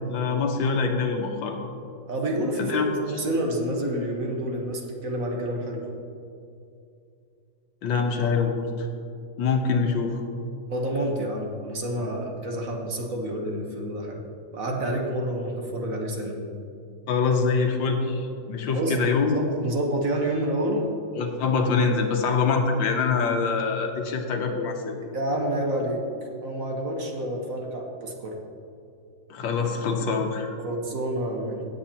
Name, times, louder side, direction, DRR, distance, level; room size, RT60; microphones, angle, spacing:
voice 1, 0.1-1.6 2.6-2.9 7.8-8.9 9.4-10.2 17.1-19.4 21.2-25.0 29.3-30.6, left 5 dB, 90° left, 4 dB, 1.7 m, -24 dB
voice 2, 2.1-2.8 3.1-5.9 10.7-14.2 14.5-16.4 18.7-19.0 19.2-20.9 25.1-26.1 26.4-28.4 30.6-31.7, right 1 dB, 50° right, 0 dB, 1.5 m, -28 dB
17.0 x 8.0 x 2.9 m, 2.5 s
omnidirectional pair, 2.0 m